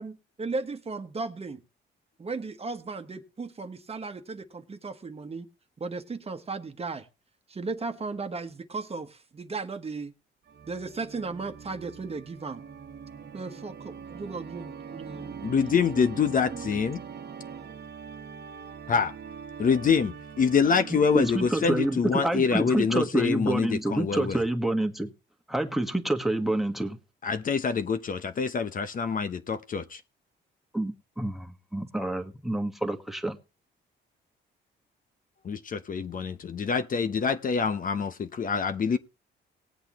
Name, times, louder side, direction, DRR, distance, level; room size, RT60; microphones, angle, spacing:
voice 1, 0.0-1.6 2.2-5.5 5.8-7.1 7.5-10.1 10.7-12.6 13.3-15.4 16.3-16.6, right 4 dB, 30° right, 1.3 m, -36 dB
Organ, 10.5-22.3, right 7 dB, 55° right, 1.2 m, -43 dB
voice 2, 15.4-17.0 18.9-19.1 19.6-24.4 27.2-30.0 35.4-39.0, left 6 dB, 45° left, 0.9 m, -26 dB
voice 3, 20.6-25.1 25.5-27.0 30.7-33.4, right 1 dB, ahead, 1.5 m, -28 dB
19.0 x 8.1 x 3.1 m
cardioid pair, 90°, 20 cm